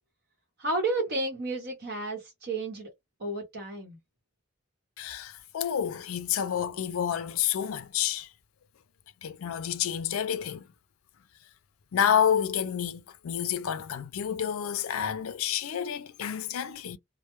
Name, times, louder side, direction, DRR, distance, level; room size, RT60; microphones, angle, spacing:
voice 1, 0.6-2.9 3.2-4.0, right 2 dB, 50° right, 0.9 m, -31 dB
voice 2, 5.0-8.3 9.2-10.6 11.9-17.0, left 9 dB, 80° left, 0.4 m, -29 dB
2.1 x 2.0 x 2.9 m
head